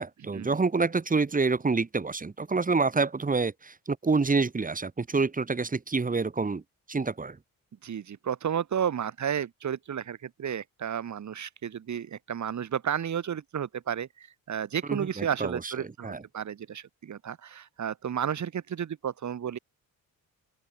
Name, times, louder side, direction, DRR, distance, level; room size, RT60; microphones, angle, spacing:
voice 1, 0.0-6.6 6.9-7.4 14.9-15.7 16.0-16.2, right 4 dB, 25° right, 5.5 m, -27 dB
voice 2, 7.8-19.6, right 8 dB, 55° right, 6.3 m, -32 dB
open air
cardioid pair, 150°, 35 cm